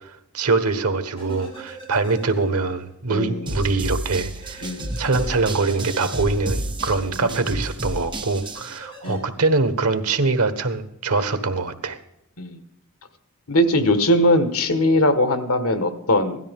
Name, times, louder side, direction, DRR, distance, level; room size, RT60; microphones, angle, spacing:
voice 1, 0.3-4.7 5.0-12.0, right 3 dB, 90° right, 10 dB, 1.3 m, -23 dB
sound 1, 1.2-2.9 3.2-3.3 4.4-7.2 8.4-9.2, right 2 dB, 25° left, 7.0 m, -42 dB
voice 2, 3.1-3.5 4.6-4.9 7.1-7.4 9.0-9.3 12.4-12.6 13.5-16.4, left 1 dB, 75° left, 9 dB, 1.5 m, -20 dB
sound 2, 3.5-8.8, right 1 dB, 20° right, 1.1 m, -31 dB
17.0 x 13.0 x 3.7 m, 0.79 s
head